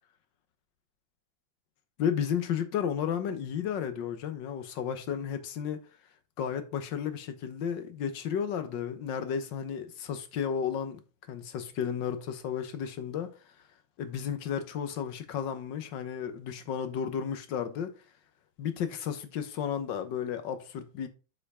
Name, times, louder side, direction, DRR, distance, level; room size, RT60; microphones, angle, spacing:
voice 1, 2.0-5.8 6.4-11.0 11.3-13.3 14.0-17.9 18.6-21.1, left 8 dB, 60° left, 1.6 m, -33 dB
6.9 x 5.0 x 4.9 m
omnidirectional pair, 2.3 m